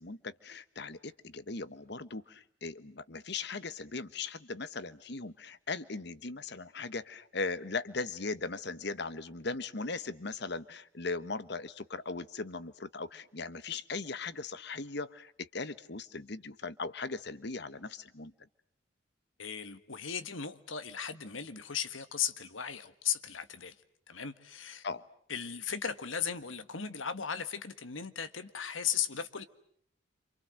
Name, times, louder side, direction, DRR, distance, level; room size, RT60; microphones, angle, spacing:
voice 1, 0.0-18.3 24.8-25.1, left 3 dB, 60° left, 14 dB, 1.2 m, -39 dB
voice 2, 19.4-23.8 24.1-24.8 25.3-29.4, left 8 dB, 90° left, 11 dB, 1.7 m, -36 dB
28.5 x 26.5 x 7.8 m, 0.64 s
head